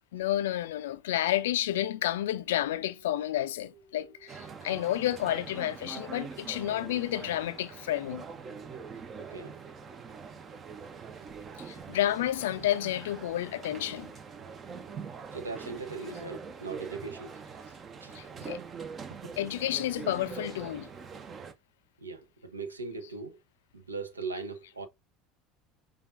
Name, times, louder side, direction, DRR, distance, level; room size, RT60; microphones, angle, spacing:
voice 1, 0.1-8.3 11.6-14.1 18.1-18.6 19.4-20.9 23.0-23.1, left 13 dB, 70° left, 0.3 m, -30 dB
sound 1, 2.1-11.9 12.2-18.8, right 4 dB, 65° right, 1.3 m, -61 dB
sound 2, 4.3-21.5, right 5 dB, 35° right, 0.6 m, -44 dB
voice 2, 9.2-9.6 15.3-17.4 18.0-18.1 18.4-18.5 22.0-23.4 23.7-24.9, right 4 dB, 90° right, 0.5 m, -39 dB
5.1 x 2.3 x 2.4 m
figure-of-eight pair, 70°, 0 cm